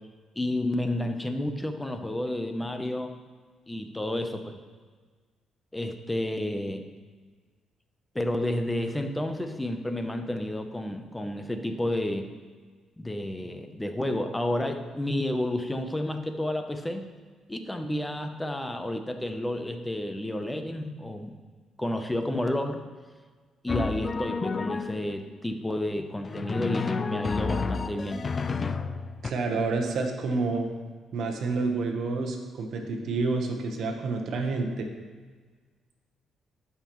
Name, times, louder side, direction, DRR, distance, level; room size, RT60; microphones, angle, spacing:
voice 1, 0.4-3.1 3.7-4.6 5.7-6.8 8.1-12.3 13.0-17.0 17.5-21.3 21.8-22.8 23.6-28.3, left 1 dB, 10° left, 6 dB, 0.7 m, -31 dB
Drum, 23.7-25.2 26.2-29.3, left 4 dB, 35° left, 0.4 m, -30 dB
voice 2, 29.2-30.7 31.1-34.9, right 3 dB, 70° right, 3 dB, 1.1 m, -29 dB
11.0 x 5.7 x 3.1 m, 1.5 s
cardioid pair, 90°, 0 cm